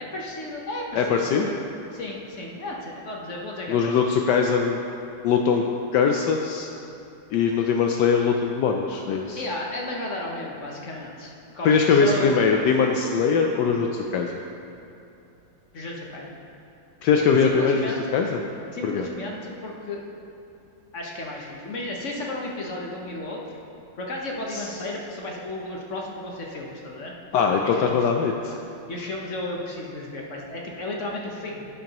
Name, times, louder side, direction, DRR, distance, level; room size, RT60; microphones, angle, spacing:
voice 1, 0.0-1.2 1.4-1.6 1.9-4.0 9.1-12.4 15.7-16.3 17.4-18.2 18.7-20.0 20.9-23.4 24.0-27.1 27.6-28.0 28.9-31.7, left 2 dB, 50° left, -1 dB, 1.2 m, -34 dB
voice 2, 1.0-1.5 3.7-4.8 5.2-5.6 5.9-6.7 7.3-9.4 11.6-14.4 17.0-18.4 18.8-19.1 24.5-24.7 27.3-28.6, left 5 dB, 75° left, 2 dB, 1.1 m, -21 dB
11.5 x 8.9 x 2.9 m, 2.8 s
omnidirectional pair, 2.0 m